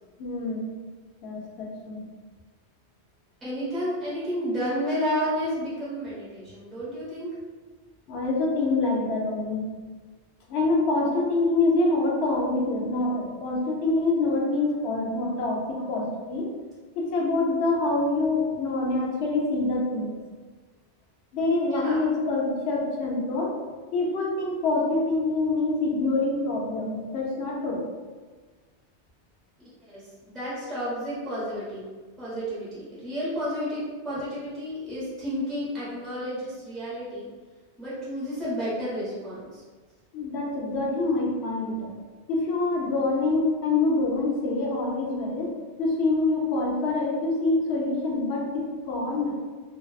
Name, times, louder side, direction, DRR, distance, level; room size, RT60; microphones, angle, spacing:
voice 1, 0.2-0.7 1.2-2.0 8.1-9.6 10.5-16.5 17.0-20.2 21.3-23.6 23.9-27.8 40.1-41.9 42.3-45.5 45.8-49.3, left 2 dB, 70° left, -2 dB, 0.8 m, -26 dB
voice 2, 3.4-7.4 21.7-22.0 29.8-30.1 30.3-31.8 32.2-37.3 37.8-39.6, equal, ahead, -10 dB, 0.8 m, -31 dB
2.6 x 2.1 x 2.3 m, 1.4 s
omnidirectional pair, 1.2 m